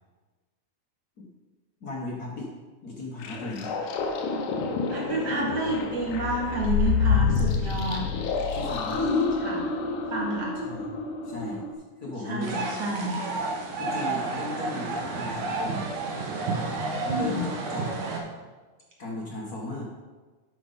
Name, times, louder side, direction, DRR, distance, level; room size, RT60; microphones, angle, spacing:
voice 1, 1.8-2.5 2.8-3.7 8.5-9.0 10.6-10.9 11.2-11.6 12.0-12.7 13.8-15.9 17.1-18.0 19.0-19.8, left 2 dB, 50° left, -2 dB, 1.2 m, -36 dB
sound 1, 3.2-11.7, left 5 dB, 85° left, 2.4 m, -28 dB
voice 2, 4.8-8.0 9.4-9.6 10.1-10.5 12.3-13.2 17.0-17.5, right 2 dB, 35° right, -4 dB, 2.2 m, -29 dB
sound 2, 12.4-18.2, right 3 dB, 75° right, 2.6 m, -31 dB
11.5 x 6.3 x 4.1 m, 1.3 s
omnidirectional pair, 3.6 m